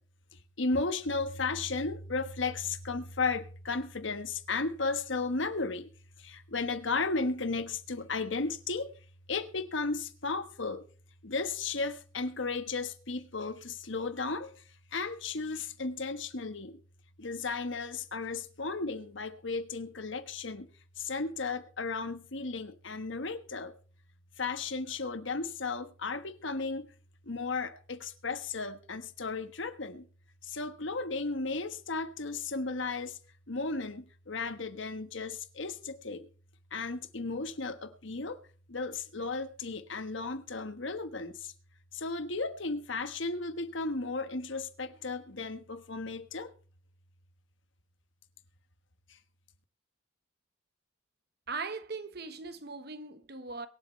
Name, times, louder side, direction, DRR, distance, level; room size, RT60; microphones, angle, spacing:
voice 1, 0.6-5.9 6.2-8.9 9.3-10.8 11.2-14.5 14.9-16.8 17.2-20.7 21.0-23.7 24.4-26.9 27.3-30.0 30.5-33.1 33.5-36.3 36.7-38.4 38.7-41.5 41.9-46.5, left 3 dB, 65° left, 1.3 m, -34 dB
voice 2, 51.5-53.7, right 4 dB, 50° right, 1.2 m, -39 dB
23.0 x 8.0 x 3.2 m
head